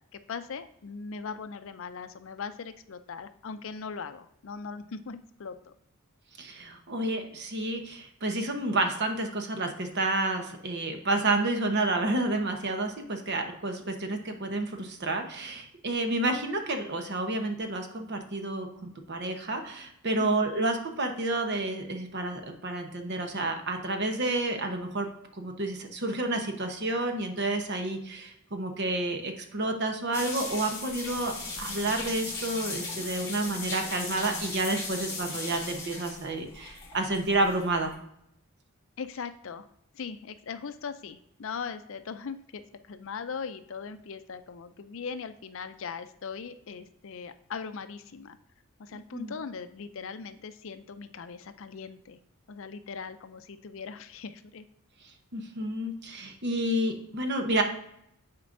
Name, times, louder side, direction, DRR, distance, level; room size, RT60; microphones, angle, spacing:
voice 1, 0.1-5.7 20.2-20.5 36.6-37.0 39.0-39.7 39.9-48.4 48.8-52.2 52.5-54.7, left 5 dB, 60° left, 11 dB, 0.5 m, -40 dB
voice 2, 6.4-25.1 25.4-37.9 49.1-49.3 55.3-57.6, right 2 dB, 50° right, 5 dB, 0.9 m, -30 dB
sound 1, 30.1-37.9, left 3 dB, 15° left, 1.9 m, -37 dB
9.6 x 4.4 x 2.6 m, 0.76 s
head